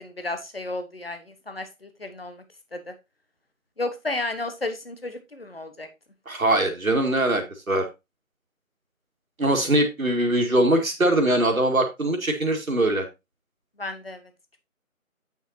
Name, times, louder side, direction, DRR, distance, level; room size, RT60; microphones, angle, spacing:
voice 1, 0.0-2.4 2.7-2.9 3.8-5.9 13.8-14.2, left 2 dB, 45° left, 8 dB, 1.2 m, -33 dB
voice 2, 6.3-7.9 9.4-13.1, right 1 dB, 75° right, 3 dB, 2.1 m, -22 dB
8.6 x 6.8 x 2.7 m, 0.23 s
figure-of-eight pair, 170°, 42 cm